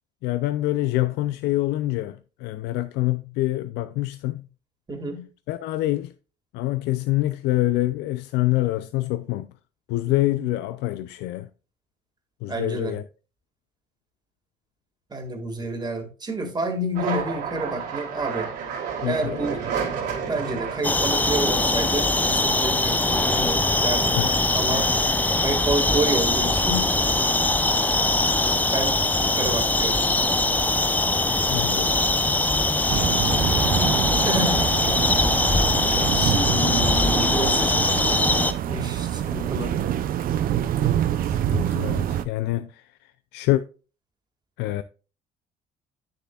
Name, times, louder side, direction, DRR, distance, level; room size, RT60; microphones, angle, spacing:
voice 1, 0.2-4.4 5.5-6.1 6.5-9.5 9.9-11.5 12.4-13.0 19.0-19.4 23.3-23.5 24.1-24.3 31.5-32.0 41.3-42.8 43.3-43.6 44.6-44.8, left 16 dB, 85° left, 0.4 m, -26 dB
voice 2, 4.9-5.2 10.1-10.3 12.5-13.0 15.1-18.5 19.1-19.6 20.3-24.2 24.5-24.9 25.4-26.9 28.7-30.0 34.2-34.6 36.1-37.9 38.7-39.8, right 2 dB, 25° right, 1.9 m, -29 dB
sound 1, 16.9-25.7 26.1-26.8 27.1-28.0, right 6 dB, 80° right, 2.9 m, -33 dB
sound 2, 20.8-38.5, left 2 dB, 10° left, 0.5 m, -22 dB
sound 3, 32.9-42.3, right 11 dB, 55° right, 0.5 m, -26 dB
9.5 x 6.8 x 2.3 m
cardioid pair, 110°, 17 cm